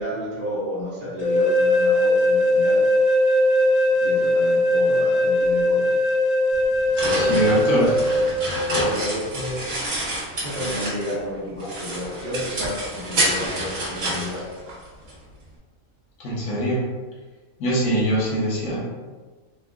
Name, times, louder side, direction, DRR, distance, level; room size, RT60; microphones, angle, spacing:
voice 1, 0.0-2.8 4.0-5.8 7.0-7.9 8.8-9.6 10.4-14.4, left 1 dB, 45° right, -13 dB, 1.4 m, -31 dB
sound 1, 1.2-8.8, left 1 dB, 85° left, 0.3 m, -20 dB
sound 2, 6.5-11.3 11.6-15.1, right 1 dB, 65° right, 1.6 m, -28 dB
voice 2, 7.1-7.8 16.2-16.9 17.6-18.9, right 1 dB, 70° left, -6 dB, 1.4 m, -23 dB
4.0 x 2.3 x 3.4 m, 1.4 s
omnidirectional pair, 1.4 m